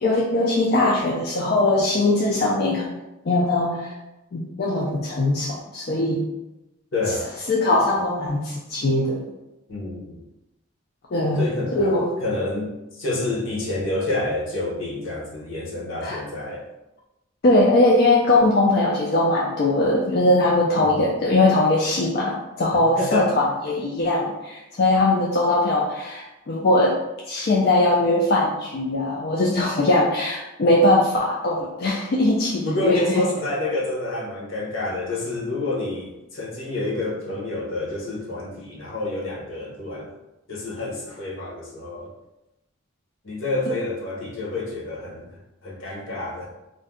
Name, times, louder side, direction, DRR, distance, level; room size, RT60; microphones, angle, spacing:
voice 1, 0.0-2.9 3.3-3.9 4.3-6.3 7.5-9.2 11.1-11.5 11.7-12.1 16.0-16.2 17.4-27.0 27.3-33.3, left 2 dB, 50° left, -3 dB, 0.4 m, -20 dB
voice 2, 6.9-7.3 9.7-10.2 11.3-16.6 20.7-21.0 23.0-23.3 32.6-40.1 40.5-42.1 43.2-46.5, left 2 dB, 70° left, -4 dB, 0.9 m, -28 dB
2.6 x 2.2 x 3.5 m, 0.97 s
head